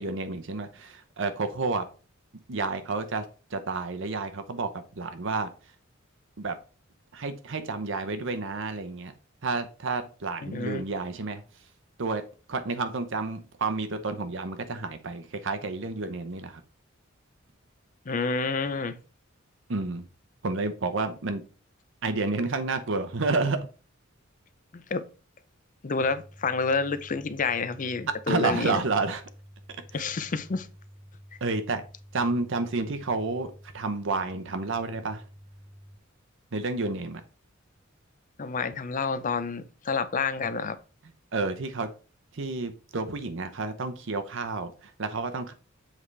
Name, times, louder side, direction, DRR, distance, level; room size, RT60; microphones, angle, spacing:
voice 1, 0.0-1.9 2.5-3.2 3.5-4.7 5.0-5.5 6.4-6.6 7.1-9.1 9.4-11.4 12.0-12.2 12.5-16.6 19.7-20.1 20.4-21.4 22.0-23.6 28.3-29.2 29.9-30.0 31.4-31.8 32.1-35.2 36.5-37.2 41.3-41.9 42.3-45.5, right 3 dB, 65° right, 0.8 m, -30 dB
voice 2, 10.4-10.8 18.1-19.0 24.7-25.0 25.8-28.8 29.9-30.7 38.4-40.8, left 4 dB, 40° left, 0.6 m, -29 dB
sound 1, 26.0-36.0, equal, 15° left, 1.7 m, -50 dB
7.4 x 4.8 x 3.3 m
head